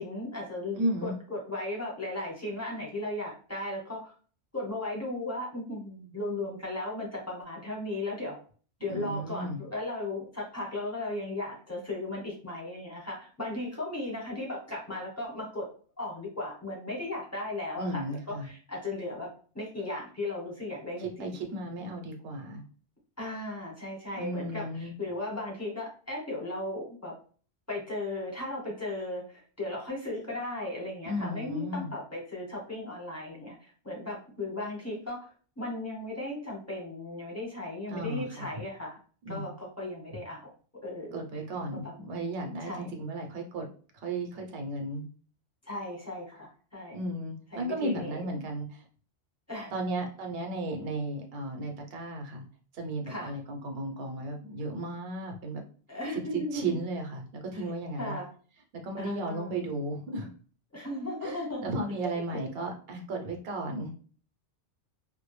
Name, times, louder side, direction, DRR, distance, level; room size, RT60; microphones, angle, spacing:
voice 1, 0.0-4.1 4.5-8.4 8.8-15.7 16.0-19.3 19.5-21.3 23.2-27.1 27.7-35.3 35.6-39.0 39.3-40.5 40.8-41.2 41.7-41.9 42.6-42.9 45.7-47.0 47.5-48.2 49.5-49.9 53.1-53.3 55.9-56.8 58.0-58.3 59.0-59.6 60.7-61.6 62.0-62.2, left 2 dB, 15° left, -3 dB, 0.9 m, -36 dB
voice 2, 0.7-1.1 8.9-9.6 17.8-18.5 21.0-22.6 24.1-24.9 31.0-31.9 37.9-38.5 39.2-39.5 41.1-43.7 43.9-45.0 46.9-48.8 49.7-52.4 52.7-55.6 56.1-56.2 56.5-58.2 58.8-60.3 61.2-63.9, right 1 dB, 65° right, 3 dB, 0.8 m, -34 dB
2.2 x 2.0 x 3.1 m, 0.41 s
omnidirectional pair, 1.2 m